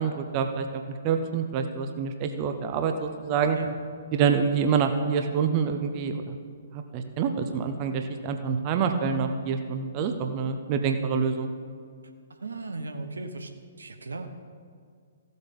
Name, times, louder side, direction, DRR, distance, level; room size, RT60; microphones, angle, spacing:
voice 1, 0.0-3.6 4.1-6.2 6.7-11.5, right 6 dB, 30° right, 6 dB, 0.8 m, -27 dB
voice 2, 12.3-13.5 13.8-14.3, right 3 dB, 75° right, 7 dB, 1.0 m, -36 dB
15.0 x 8.0 x 5.3 m, 2.1 s
figure-of-eight pair, 120°, 0 cm